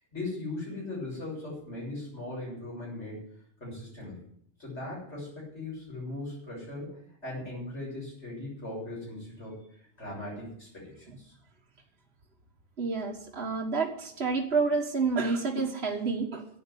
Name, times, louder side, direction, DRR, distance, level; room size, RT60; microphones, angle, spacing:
voice 1, 0.1-3.2 3.6-4.2 4.6-6.9 7.2-9.6 10.0-11.3, left 2 dB, 80° left, -6 dB, 7.4 m, -39 dB
voice 2, 12.8-16.5, right 4 dB, 65° right, -1 dB, 1.8 m, -29 dB
11.5 x 8.1 x 9.8 m, 0.70 s
omnidirectional pair, 1.2 m